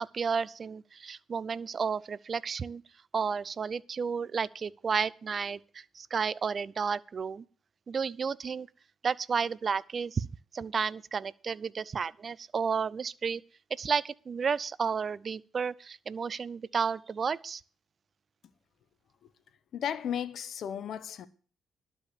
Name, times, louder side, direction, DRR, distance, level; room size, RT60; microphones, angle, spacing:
voice 1, 0.0-2.8 3.1-7.4 7.9-8.7 9.0-10.3 10.5-13.4 13.7-17.6, right 6 dB, 45° right, 0.5 m, -32 dB
voice 2, 19.7-21.3, left 9 dB, 65° left, 0.9 m, -34 dB
12.0 x 5.3 x 8.3 m
cardioid pair, 90°, 0 cm